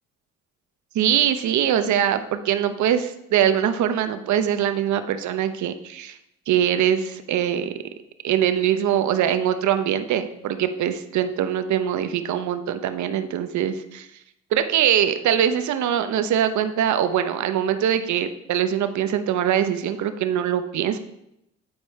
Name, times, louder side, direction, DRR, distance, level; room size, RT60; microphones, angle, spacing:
voice 1, 0.9-6.2 6.5-7.7 8.2-14.1 14.5-21.0, right 9 dB, 70° right, 10 dB, 0.7 m, -22 dB
8.9 x 4.6 x 4.3 m, 0.81 s
cardioid pair, 90°, 30 cm